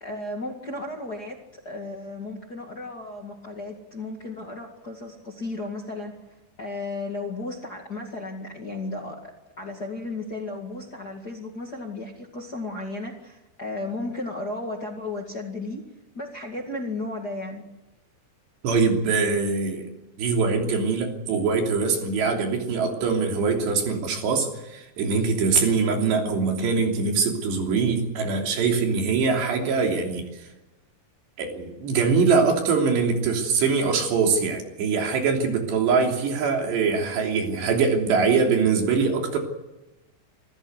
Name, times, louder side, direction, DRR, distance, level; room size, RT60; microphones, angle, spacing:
voice 1, 0.0-6.2 6.6-9.3 9.6-15.8 16.2-17.7, left 2 dB, 35° left, 1 dB, 1.8 m, -34 dB
voice 2, 18.6-19.9 20.2-30.5 31.4-39.4, right 5 dB, 85° right, 2 dB, 5.4 m, -23 dB
26.5 x 14.5 x 8.2 m, 1.0 s
omnidirectional pair, 4.8 m